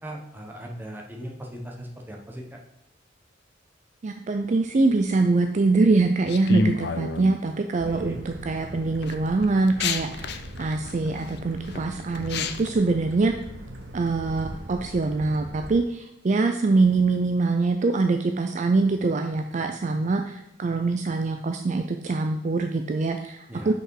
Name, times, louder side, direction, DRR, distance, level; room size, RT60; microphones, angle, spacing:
voice 1, 0.0-2.4 7.8-8.2 23.5-23.7, equal, 10° right, 0 dB, 1.0 m, -38 dB
voice 2, 4.0-13.3 13.9-23.7, right 3 dB, 40° right, 5 dB, 0.4 m, -24 dB
sound 1, 6.3-7.4 8.1-8.5 9.0-12.7, left 3 dB, 55° left, 0.5 m, -29 dB
sound 2, 7.8-15.8, right 1 dB, 65° right, 1.0 m, -41 dB
6.0 x 5.4 x 4.6 m, 0.88 s
head